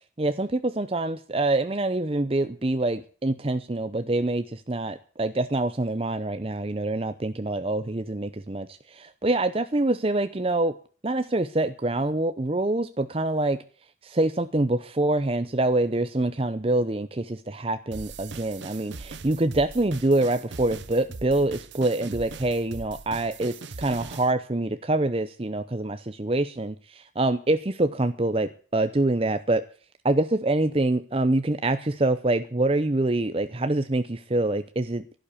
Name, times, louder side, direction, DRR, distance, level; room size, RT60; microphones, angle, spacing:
voice 1, 0.2-10.7 11.0-13.6 14.0-29.6 30.0-35.0, right 2 dB, 30° right, 10 dB, 0.7 m, -25 dB
sound 1, 17.9-24.3, right 4 dB, 85° right, 1.0 m, -41 dB
12.0 x 11.5 x 8.5 m, 0.42 s
head